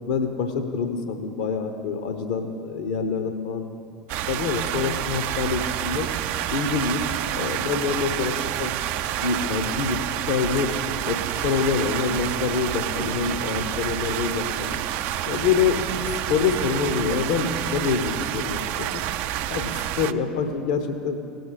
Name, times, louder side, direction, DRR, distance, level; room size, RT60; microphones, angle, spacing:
voice 1, 0.1-3.6 4.3-6.1 6.5-8.7 9.0-10.0 10.3-10.7 11.0-14.8 15.3-19.0 19.5-21.2, left 5 dB, 60° left, 7 dB, 0.8 m, -26 dB
sound 1, 4.1-20.1, right 12 dB, 50° right, 0.4 m, -28 dB
18.0 x 6.9 x 3.9 m, 2.4 s
figure-of-eight pair, 70°, 4 cm